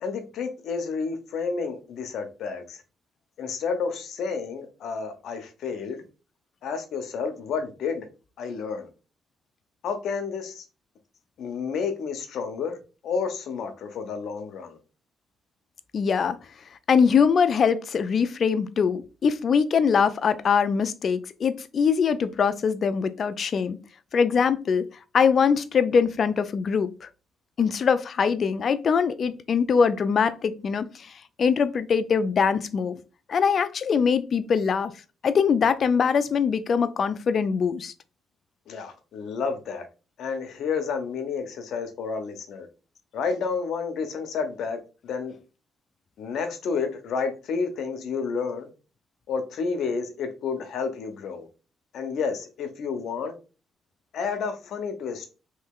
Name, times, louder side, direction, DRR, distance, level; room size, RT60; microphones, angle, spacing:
voice 1, 0.0-2.8 3.4-6.0 6.6-8.1 8.4-8.9 9.8-10.6 11.4-12.8 13.0-14.8 38.7-39.9 40.2-42.7 43.1-45.4 46.2-48.7 49.3-51.5 51.9-53.3 54.1-55.3, left 5 dB, 70° left, 0.8 m, -30 dB
voice 2, 15.9-16.4 16.9-23.8 24.1-24.8 25.1-27.1 27.6-30.9 31.4-33.0 33.3-34.9 35.2-37.9, left 6 dB, 50° left, 0.4 m, -22 dB
3.2 x 3.1 x 3.7 m
cardioid pair, 90°, 0 cm